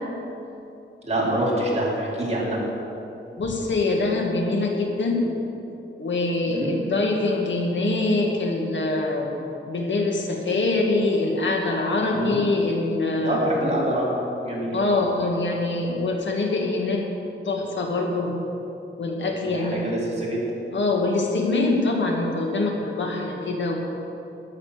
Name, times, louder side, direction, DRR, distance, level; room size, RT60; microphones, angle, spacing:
voice 1, 1.0-2.6 6.5-6.7 12.1-12.4 13.2-14.2 14.4-14.8 19.4-20.4, right 1 dB, 30° right, -5 dB, 3.7 m, -25 dB
voice 2, 3.4-5.2 6.0-9.3 9.7-13.4 14.7-17.0 17.5-18.3 19.0-19.8 20.7-23.7, left 2 dB, 65° left, 0 dB, 2.0 m, -24 dB
13.5 x 10.5 x 6.7 m, 2.9 s
wide cardioid pair, 130°, 20 cm